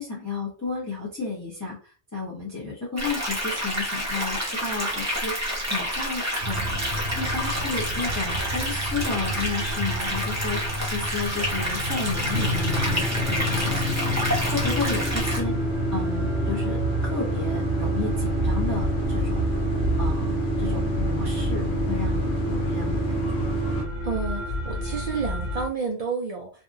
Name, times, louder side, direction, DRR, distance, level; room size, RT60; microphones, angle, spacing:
voice 1, 0.0-6.8 7.1-14.1 14.5-15.5 15.9-19.5 20.0-23.5, left 4 dB, 15° left, -7 dB, 0.8 m, -33 dB
sound 1, 3.0-15.4, equal, 20° right, 0.6 m, -29 dB
sound 2, 6.4-25.7, equal, 55° right, 0.8 m, -30 dB
sound 3, 12.3-23.9, equal, 70° left, 0.9 m, -28 dB
voice 2, 24.0-26.6, right 5 dB, 80° right, 0 dB, 0.3 m, -30 dB
2.8 x 2.4 x 2.5 m, 0.37 s
omnidirectional pair, 1.2 m